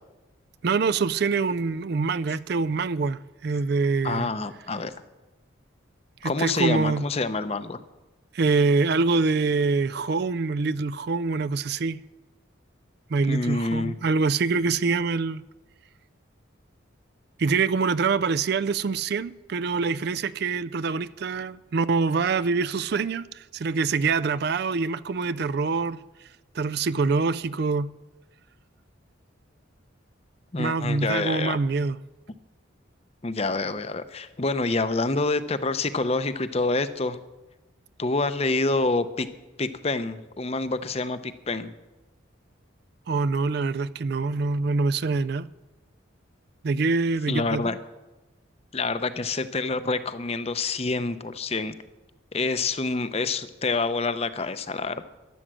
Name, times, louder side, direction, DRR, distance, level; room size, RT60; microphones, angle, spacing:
voice 1, 0.6-4.3 6.2-7.1 8.3-12.0 13.1-15.4 17.4-26.0 26.5-27.9 30.6-32.0 43.1-45.5 46.6-47.7, right 4 dB, 50° right, 0.4 m, -25 dB
voice 2, 4.0-4.9 6.2-7.8 13.3-14.0 30.5-31.6 33.2-37.2 38.0-39.3 39.6-41.7 47.3-47.8 48.7-51.8 52.3-55.0, left 3 dB, 30° left, 0.7 m, -27 dB
12.5 x 11.0 x 7.5 m
head